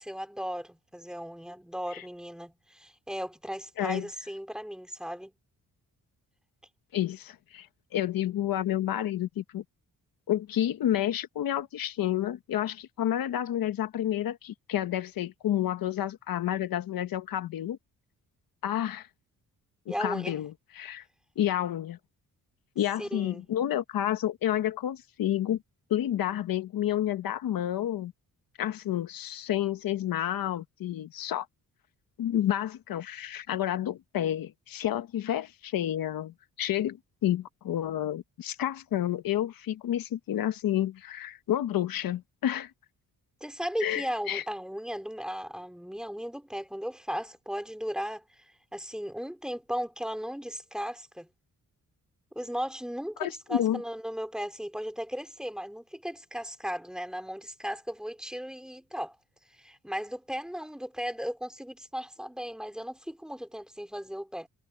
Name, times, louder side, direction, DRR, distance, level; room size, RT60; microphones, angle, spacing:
voice 1, 0.0-5.3 19.9-20.4 23.0-23.5 43.4-48.4 48.7-51.3 52.3-59.1 59.5-64.5, equal, ahead, 3.3 m, -36 dB
voice 2, 6.9-7.7 7.9-9.6 10.3-17.8 18.6-19.1 19.9-20.5 20.8-21.0 21.4-22.0 22.8-25.6 25.9-28.1 28.6-31.5 32.2-37.0 37.2-42.7 43.8-44.4 53.2-53.8, left 12 dB, 80° left, 1.2 m, -30 dB
wide cardioid pair, 145°, 34 cm